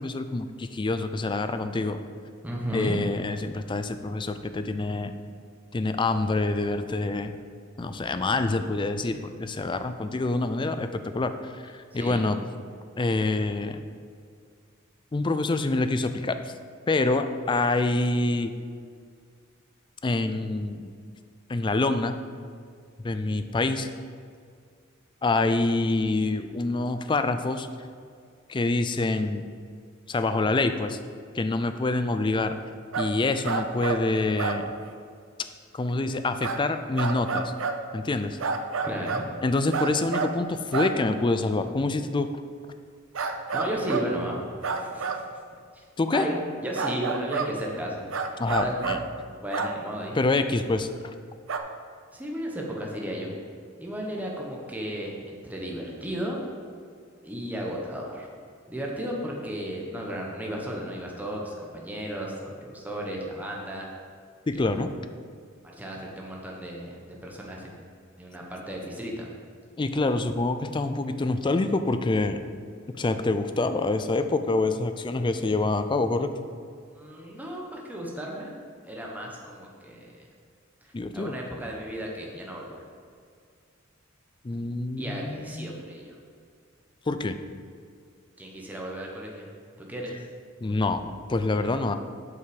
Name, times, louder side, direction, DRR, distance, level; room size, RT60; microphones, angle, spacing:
voice 1, 0.0-2.0 2.7-5.1 5.7-7.4 7.8-12.4 13.0-13.8 15.1-16.4 16.9-18.5 20.0-20.9 21.5-22.2 23.0-23.9 25.2-27.7 28.5-29.4 30.1-31.0 31.3-32.6 33.0-34.7 35.7-37.5 37.9-38.4 39.4-42.3 46.0-46.3 48.4-49.0 50.1-51.1 64.5-64.9 69.8-72.4 73.0-76.3 80.9-81.3 84.4-85.7 87.1-87.4 90.6-91.9, left 2 dB, 25° left, 9 dB, 0.4 m, -26 dB
voice 2, 2.4-3.0 11.9-12.3 38.8-39.2 43.5-44.4 44.7-45.2 45.7-45.8 46.1-48.0 48.6-48.8 49.4-50.2 52.1-53.3 53.8-56.4 57.2-58.3 58.7-63.9 64.6-64.7 65.8-67.8 68.2-69.3 76.9-78.6 78.8-80.3 80.8-82.8 85.0-86.2 88.4-89.5 89.8-90.2, equal, 10° right, -2 dB, 1.0 m, -34 dB
sound 1, 32.9-33.1 33.5-34.0 34.4-34.6 34.9-35.0 36.4-36.6 37.0-37.8 38.4-39.3 39.7-40.3 40.7-40.9 43.2-44.1 44.6-45.2 46.8-47.5 48.1-49.0 49.5-49.8 51.5-51.6, right 5 dB, 80° right, 0.6 m, -28 dB
8.0 x 5.6 x 5.1 m, 2.2 s
head